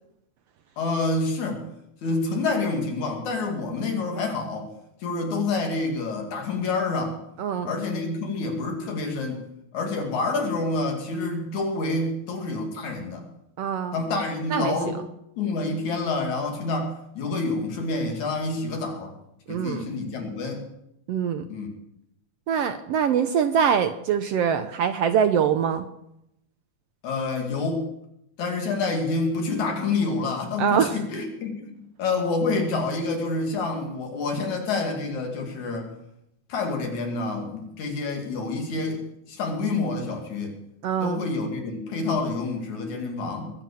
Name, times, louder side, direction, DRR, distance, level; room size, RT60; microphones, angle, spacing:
voice 1, 0.8-1.6 2.0-4.7 5.0-7.2 7.6-9.4 9.7-13.3 13.9-15.0 15.4-19.2 19.5-20.6 21.5-21.7 27.0-27.9 28.4-35.9 36.5-40.5 41.0-43.5, left 3 dB, 70° left, 2 dB, 3.8 m, -28 dB
voice 2, 7.4-7.7 13.6-14.0 14.5-14.8 19.5-19.8 21.1-21.5 22.5-25.9 30.6-31.0 40.8-41.2, right 7 dB, 75° right, 9 dB, 1.5 m, -23 dB
21.5 x 7.6 x 7.2 m, 0.79 s
omnidirectional pair, 3.4 m